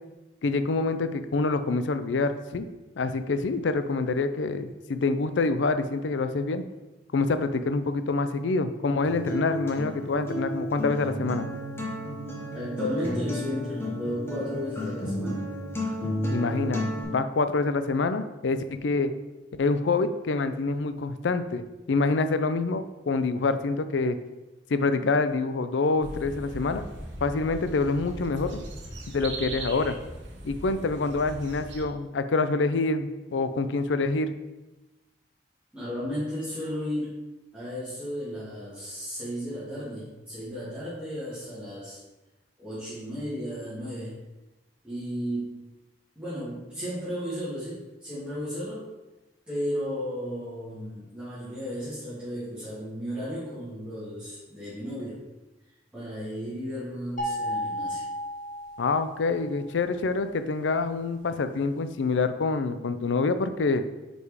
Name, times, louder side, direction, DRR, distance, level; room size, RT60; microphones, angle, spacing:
voice 1, 0.4-2.7 3.0-6.6 7.1-11.5 16.3-19.1 19.6-24.2 24.7-26.8 27.2-28.6 29.1-30.0 30.4-34.4 58.8-63.8, left 3 dB, 85° left, 11 dB, 0.5 m, -26 dB
Acoustic guitar, 9.0-17.0, equal, 15° left, 1.3 m, -32 dB
voice 2, 12.5-15.5 35.7-37.2 37.5-42.0 42.6-44.2 44.8-45.5 46.2-48.9 49.5-55.2 55.9-58.0, equal, 10° right, -13 dB, 2.0 m, -34 dB
sound 1, 26.0-31.8, right 1 dB, 85° right, 1.1 m, -39 dB
sound 2, 57.2-59.4, equal, 50° left, 1.4 m, -33 dB
5.2 x 4.9 x 4.7 m, 1.1 s
head